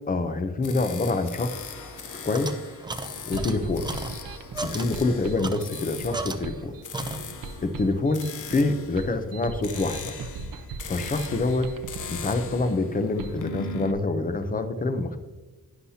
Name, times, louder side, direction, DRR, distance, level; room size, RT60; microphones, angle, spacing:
voice 1, 0.1-1.7 2.2-2.5 3.3-3.9 4.6-6.7 7.6-10.1 10.9-11.7 12.1-15.2, left 3 dB, 25° left, 9 dB, 0.7 m, -26 dB
sound 1, 0.6-13.9, left 5 dB, 55° left, 0.9 m, -40 dB
sound 2, 1.5-6.7 6.9-7.6, right 2 dB, 10° right, 0.5 m, -36 dB
sound 3, 3.1-13.4, right 4 dB, 65° right, 1.0 m, -39 dB
11.5 x 10.0 x 2.8 m, 1.2 s
wide cardioid pair, 155°, 36 cm